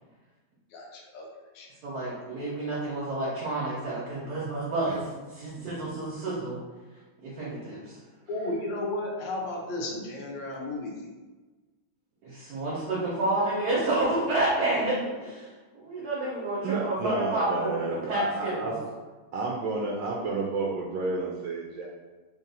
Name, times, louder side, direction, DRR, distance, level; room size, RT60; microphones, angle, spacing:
voice 1, 0.7-1.3 1.5-1.7 1.9-2.3 8.3-10.9, left 2 dB, 80° left, -1 dB, 1.4 m, -34 dB
voice 2, 1.8-6.6 7.2-8.0 12.2-18.7, right 2 dB, 60° right, -7 dB, 1.4 m, -29 dB
voice 3, 16.6-18.8 19.3-21.9, right 3 dB, 80° right, -2 dB, 1.3 m, -31 dB
3.6 x 2.5 x 4.0 m, 1.3 s
omnidirectional pair, 2.0 m